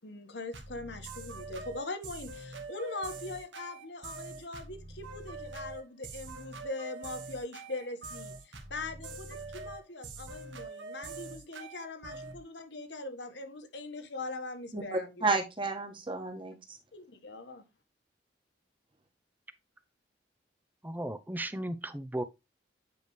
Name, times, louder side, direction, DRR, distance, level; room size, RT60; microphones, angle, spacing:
voice 1, 0.0-15.2 16.9-17.6, left 2 dB, 65° left, 1.6 m, -41 dB
sound 1, 0.5-12.4, right 3 dB, 80° right, 1.6 m, -44 dB
voice 2, 14.7-16.8, right 3 dB, 30° right, 1.7 m, -32 dB
voice 3, 20.8-22.2, right 1 dB, 10° right, 0.7 m, -35 dB
9.3 x 5.0 x 3.3 m
head